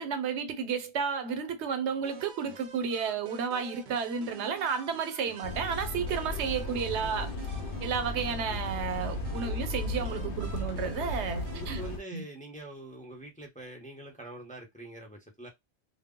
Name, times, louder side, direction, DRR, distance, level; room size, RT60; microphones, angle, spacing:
voice 1, 0.0-7.3 7.8-11.8 12.1-12.2, right 6 dB, 85° right, 0.9 m, -32 dB
sound 1, 2.0-12.0, right 4 dB, 55° right, 0.6 m, -48 dB
sound 2, 5.4-12.0, left 2 dB, 85° left, 0.9 m, -35 dB
voice 2, 11.5-15.5, right 1 dB, 10° left, 0.5 m, -45 dB
2.2 x 2.0 x 3.5 m
omnidirectional pair, 1.1 m